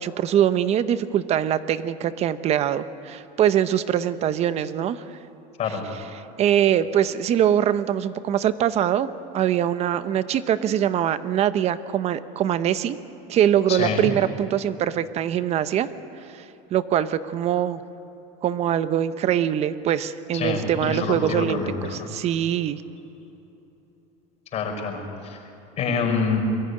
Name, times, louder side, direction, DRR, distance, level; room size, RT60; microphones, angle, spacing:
voice 1, 0.0-5.0 6.4-9.1 9.3-13.0 13.3-15.9 16.3-16.4 16.7-17.8 18.4-22.8, right 10 dB, 35° right, 13 dB, 0.8 m, -23 dB
voice 2, 13.7-14.1 20.3-22.1 24.5-25.4 25.8-26.4, left 5 dB, 40° left, 2 dB, 5.6 m, -26 dB
23.0 x 14.0 x 9.9 m, 2.9 s
cardioid pair, 145°, 18 cm